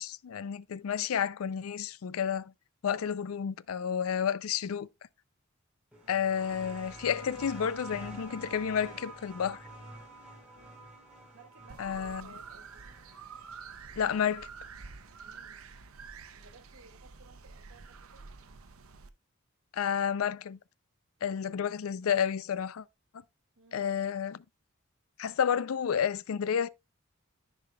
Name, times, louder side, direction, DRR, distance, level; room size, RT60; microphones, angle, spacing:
voice 1, 0.0-2.5 2.8-4.9 6.1-9.7 11.8-12.3 14.0-14.5 19.7-20.6 21.2-22.9 23.7-24.4 25.2-26.7, left 8 dB, 80° left, 0.4 m, -31 dB
sound 1, 5.9-15.2 16.3-16.4, right 2 dB, 5° right, 3.9 m, -48 dB
voice 2, 11.3-12.8 15.2-15.6 16.4-18.3 23.6-23.9, right 2 dB, 70° right, 1.9 m, -58 dB
sound 2, 11.7-19.1, right 5 dB, 90° right, 0.8 m, -48 dB
14.0 x 5.1 x 2.3 m
head